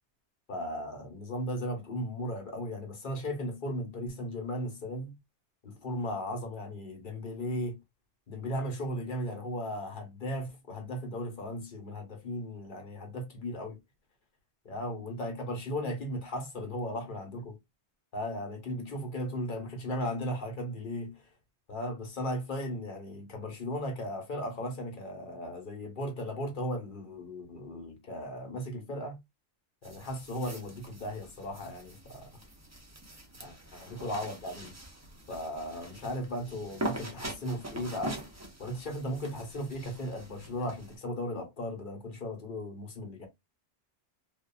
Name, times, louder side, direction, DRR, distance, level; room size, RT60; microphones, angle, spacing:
voice 1, 0.5-5.1 5.6-7.8 8.3-13.8 14.6-17.6 18.1-21.3 21.7-29.2 29.8-32.3 33.4-34.7 35.3-38.2 38.6-43.3, equal, 50° left, 0.9 m, -36 dB
sound 1, 29.8-41.0, right 1 dB, 20° right, 0.4 m, -43 dB
2.8 x 2.3 x 2.2 m
omnidirectional pair, 1.2 m